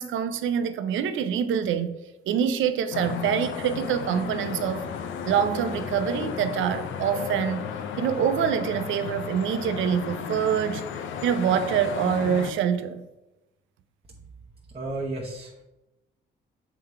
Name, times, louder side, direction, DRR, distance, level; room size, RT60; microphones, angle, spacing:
voice 1, 0.0-1.9 2.3-4.8 5.3-7.7 8.0-10.8 11.2-13.1, right 8 dB, 75° right, 0.6 m, -25 dB
sound 1, 2.9-12.5, left 7 dB, 75° left, 0.6 m, -34 dB
voice 2, 14.7-15.6, right 2 dB, 30° right, 0.9 m, -33 dB
7.0 x 3.7 x 4.5 m
cardioid pair, 90°, 20 cm